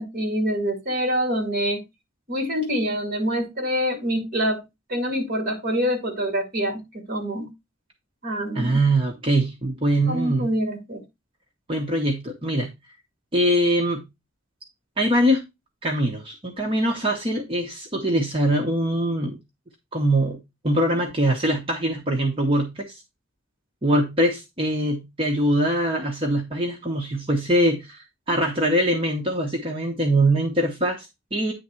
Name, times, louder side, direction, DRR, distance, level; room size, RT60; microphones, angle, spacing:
voice 1, 0.0-1.8 2.3-4.6 4.9-7.5 8.2-8.8 10.1-11.0, equal, 45° right, 2.2 m, -25 dB
voice 2, 8.5-10.5 11.7-12.7 13.3-14.0 15.0-15.4 15.8-19.4 19.9-20.4 20.6-23.0 23.8-31.5, right 1 dB, 30° right, 1.0 m, -23 dB
9.3 x 3.6 x 4.4 m
head